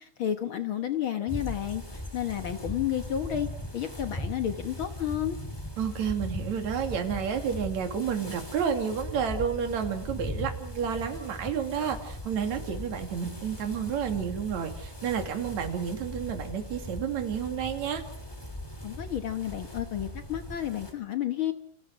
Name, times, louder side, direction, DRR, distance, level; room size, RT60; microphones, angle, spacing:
voice 1, 0.0-1.8 2.1-3.5 3.7-5.4 18.8-21.5, left 10 dB, 55° left, 8 dB, 1.6 m, -31 dB
sound 1, 1.3-20.9, left 1 dB, 10° left, 3.1 m, -39 dB
voice 2, 5.8-18.0, right 7 dB, 65° right, 5 dB, 3.7 m, -30 dB
29.5 x 27.0 x 4.9 m, 0.62 s
omnidirectional pair, 3.6 m